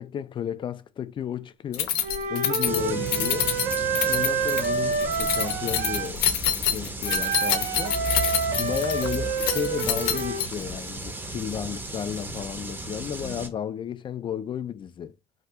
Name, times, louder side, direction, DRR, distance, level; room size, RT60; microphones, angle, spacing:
voice 1, 0.0-2.0 2.3-3.5 4.0-6.2 6.6-8.0 8.6-15.1, left 9 dB, 30° left, 0.3 m, -33 dB
Keys jangling, 1.7-10.7, left 10 dB, 75° left, 0.6 m, -27 dB
Wind instrument woodwind instrument, 2.0-6.1 7.0-10.4, right 6 dB, 75° right, 0.7 m, -28 dB
sound 1, 2.6-13.5, right 2 dB, 10° right, 0.6 m, -35 dB
2.7 x 2.3 x 3.5 m
supercardioid pair, 100°, 17 cm